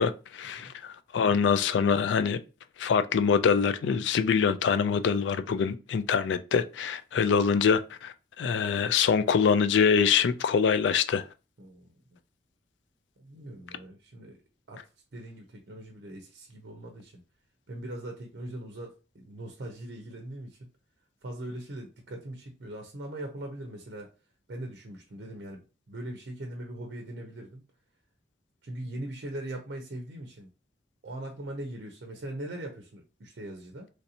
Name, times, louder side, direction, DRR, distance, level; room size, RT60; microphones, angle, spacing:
voice 1, 0.0-2.4 2.8-11.2, left 6 dB, 70° left, 0.3 m, -24 dB
voice 2, 11.6-12.2 13.2-14.4 14.7-17.2 17.7-20.7 21.2-24.1 24.5-27.6 28.6-30.5 31.0-33.9, right 1 dB, 60° right, 0.6 m, -41 dB
3.2 x 2.6 x 2.7 m
head